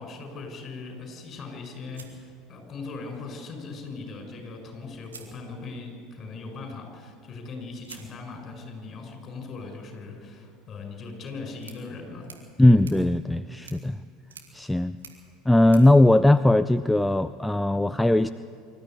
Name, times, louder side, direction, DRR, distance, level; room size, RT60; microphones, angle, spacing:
voice 1, 0.0-12.8, left 3 dB, 40° left, 3 dB, 6.3 m, -39 dB
sound 1, 1.9-3.1 4.4-4.5 5.0-6.0 7.8-17.0, right 5 dB, 85° right, 2.4 m, -52 dB
voice 2, 12.6-14.0 14.5-15.0 15.5-18.3, left 1 dB, 5° left, 13 dB, 0.5 m, -19 dB
24.5 x 13.5 x 9.3 m, 2.3 s
hypercardioid pair, 75°, 0 cm